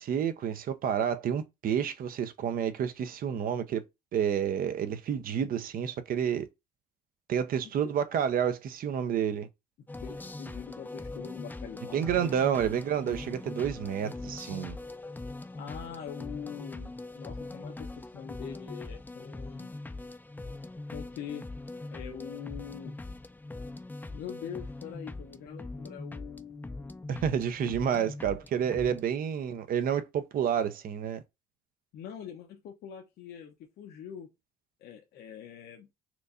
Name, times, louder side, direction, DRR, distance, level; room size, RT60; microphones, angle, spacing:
voice 1, 0.0-3.8 4.1-6.5 7.3-9.5 11.9-14.8 27.1-31.2, right 8 dB, 55° right, 0.7 m, -29 dB
sound 1, 9.9-29.0, left 2 dB, 10° left, 0.5 m, -42 dB
voice 2, 10.0-12.6 15.5-19.7 20.9-21.5 21.9-23.0 24.1-27.1 31.9-34.3 34.8-35.9, left 8 dB, 70° left, 0.8 m, -43 dB
4.4 x 2.6 x 2.5 m
supercardioid pair, 85°, 17 cm